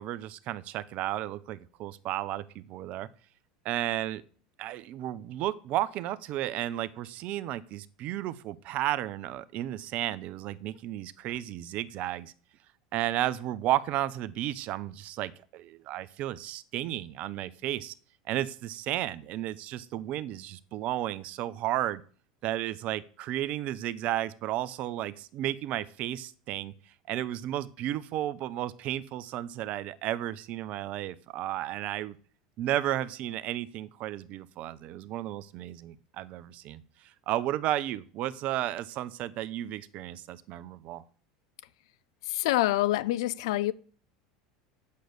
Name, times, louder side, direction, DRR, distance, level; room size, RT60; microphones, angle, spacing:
voice 1, 0.0-3.1 3.6-4.2 4.6-12.3 12.9-17.9 18.3-22.0 22.4-26.7 27.1-32.2 32.6-36.8 37.3-41.0, right 13 dB, 50° right, 0.7 m, -33 dB
voice 2, 42.3-43.7, left 15 dB, 70° left, 0.6 m, -26 dB
8.4 x 6.6 x 8.0 m
hypercardioid pair, 85°, 3 cm